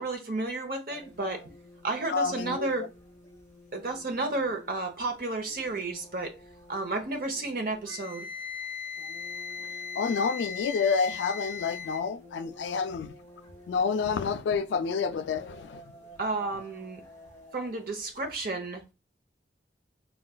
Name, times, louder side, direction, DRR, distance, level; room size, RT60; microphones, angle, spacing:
voice 1, 0.0-1.5 1.8-2.9 3.7-6.3 6.7-8.3 16.2-17.0 17.5-18.8, right 2 dB, 55° right, 0.7 m, -32 dB
sound 1, 0.9-18.3, equal, 15° left, 1.1 m, -53 dB
voice 2, 2.1-2.9 9.6-9.7 10.0-13.1 13.7-15.8, left 5 dB, 85° left, 0.3 m, -29 dB
Wind instrument woodwind instrument, 7.9-12.1, left 6 dB, 85° right, 0.9 m, -38 dB
3.9 x 2.2 x 2.2 m
head